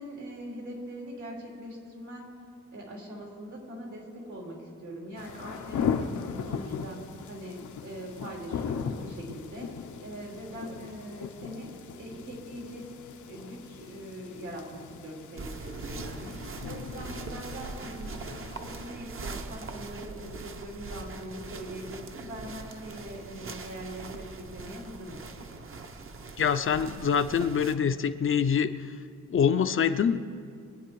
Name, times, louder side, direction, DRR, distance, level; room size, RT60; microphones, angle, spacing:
voice 1, 0.0-2.4 2.7-12.9 13.3-25.6, equal, 80° right, -2 dB, 4.1 m, -42 dB
sound 1, 5.2-18.9, left 6 dB, 85° left, 0.9 m, -38 dB
sound 2, 15.4-27.7, right 3 dB, 45° right, 1.0 m, -41 dB
voice 2, 26.4-28.7 29.3-30.2, left 7 dB, 45° left, 10 dB, 0.5 m, -25 dB
24.0 x 9.2 x 4.7 m, 2.3 s
wide cardioid pair, 135°, 29 cm